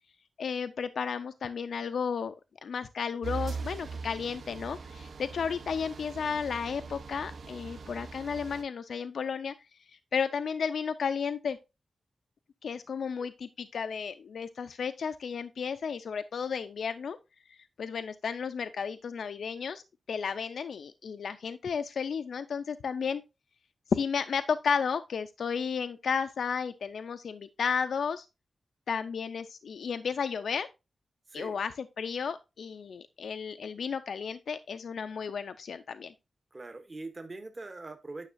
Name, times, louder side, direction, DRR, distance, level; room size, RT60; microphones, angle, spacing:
voice 1, 0.4-2.3 2.6-9.5 10.1-11.6 12.6-17.2 17.5-19.8 20.1-23.2 23.9-28.3 28.9-30.7 31.3-31.7 32.0-36.1, left 6 dB, 85° left, 0.4 m, -33 dB
sound 1, 3.2-8.6, right 4 dB, 70° right, 0.8 m, -41 dB
voice 2, 31.3-31.6 36.5-38.3, right 2 dB, 30° right, 0.9 m, -42 dB
9.8 x 6.4 x 2.6 m
wide cardioid pair, 135°, 0 cm